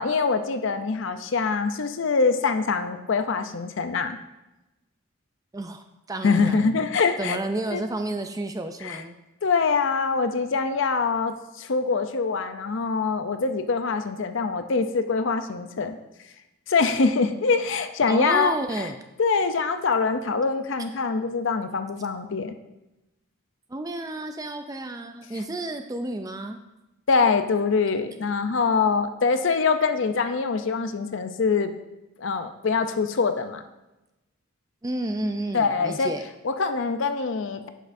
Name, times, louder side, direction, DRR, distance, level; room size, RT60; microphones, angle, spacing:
voice 1, 0.0-4.2 6.2-7.4 7.7-7.8 8.8-9.0 9.4-16.0 16.7-18.9 19.2-22.5 27.1-31.7 32.2-33.6 35.5-36.1 36.4-37.7, left 4 dB, 60° left, 9 dB, 0.5 m, -24 dB
voice 2, 5.5-6.8 7.2-9.2 18.1-19.0 23.7-26.6 34.8-36.3, right 2 dB, 15° right, 7 dB, 0.4 m, -31 dB
9.9 x 6.5 x 2.6 m, 0.98 s
head